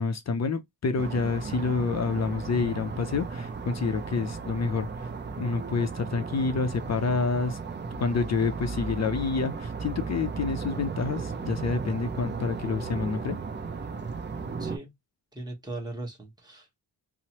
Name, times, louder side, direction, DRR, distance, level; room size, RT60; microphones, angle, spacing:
voice 1, 0.0-5.1 5.4-7.6 8.0-13.4, left 4 dB, 40° left, 0.5 m, -28 dB
sound 1, 1.0-14.8, right 4 dB, 25° right, 0.4 m, -35 dB
voice 2, 14.6-14.9 15.3-16.8, right 2 dB, 10° right, 1.0 m, -39 dB
2.9 x 2.0 x 2.8 m
cardioid pair, 85°, 41 cm